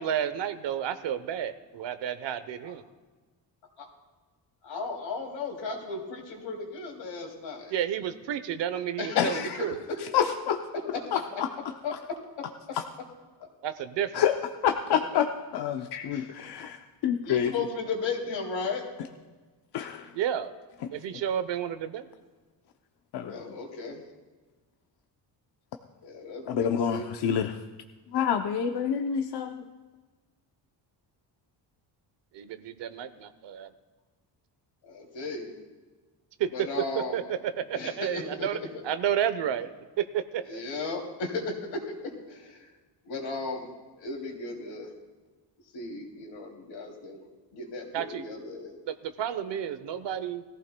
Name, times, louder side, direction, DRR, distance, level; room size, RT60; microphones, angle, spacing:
voice 1, 0.0-2.8 7.7-9.8 13.6-14.2 20.1-20.5 20.9-22.1 32.3-33.7 36.4-36.7 36.9-40.6 47.9-48.2 48.9-50.4, right 9 dB, 75° right, 11 dB, 0.9 m, -31 dB
voice 2, 4.6-7.7 9.0-9.4 9.9-10.0 10.8-11.2 11.8-11.9 16.1-16.6 17.2-18.8 23.3-24.0 26.0-27.1 34.8-35.6 36.5-37.2 37.7-38.5 38.7-38.8 40.5-42.7 43.0-43.7 44.0-44.9 45.7-48.8, left 3 dB, 85° left, 0 dB, 2.9 m, -35 dB
voice 3, 9.2-9.5 10.1-10.6 11.1-11.5 12.7-12.8 14.1-14.3 14.6-15.3 15.5-17.5 19.7-20.1 23.1-23.4 26.5-27.6 28.1-29.6, left 8 dB, 65° left, 5 dB, 0.7 m, -27 dB
20.0 x 15.0 x 2.2 m, 1.3 s
cardioid pair, 145°, 44 cm